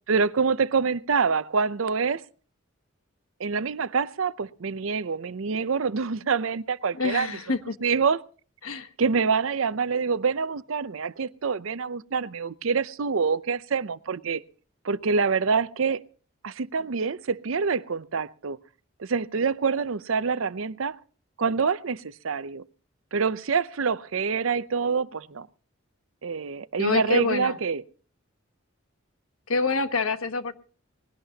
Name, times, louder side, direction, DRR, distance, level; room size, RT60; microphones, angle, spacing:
voice 1, 0.1-2.2 3.4-7.3 7.8-8.2 9.0-14.4 14.8-16.0 16.4-18.6 19.0-21.0 21.4-22.6 23.1-25.5 26.2-27.8, right 5 dB, 70° right, 0.6 m, -26 dB
voice 2, 6.9-7.8 8.6-8.9 26.8-27.6 29.5-30.5, left 3 dB, 85° left, 1.2 m, -26 dB
20.0 x 17.0 x 2.8 m
head